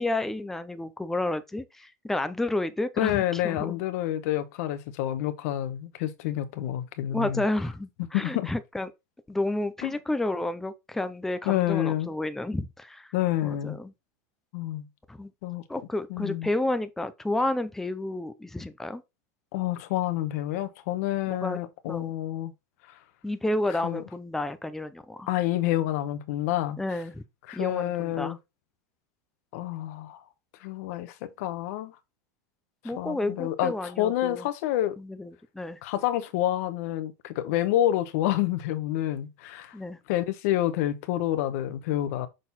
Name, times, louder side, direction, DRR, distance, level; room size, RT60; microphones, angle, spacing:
voice 1, 0.0-3.8 7.1-8.9 9.3-13.1 13.4-13.9 15.1-15.3 15.7-19.0 21.3-21.6 21.9-22.1 23.2-25.3 26.8-27.2 27.5-28.4 32.8-34.4 35.0-35.8 39.7-40.0, left 2 dB, 5° left, 0.5 m, -31 dB
voice 2, 3.0-7.4 8.1-8.5 9.8-9.9 11.4-12.1 13.1-13.8 14.5-14.9 15.4-15.6 16.1-16.5 19.5-22.5 22.9-23.0 23.8-24.0 25.3-26.8 27.5-28.4 29.5-30.2 30.6-32.0 32.8-35.0 35.8-39.7 40.1-42.3, left 13 dB, 60° left, 1.1 m, -28 dB
6.4 x 3.9 x 4.1 m
supercardioid pair, 160°, 9 cm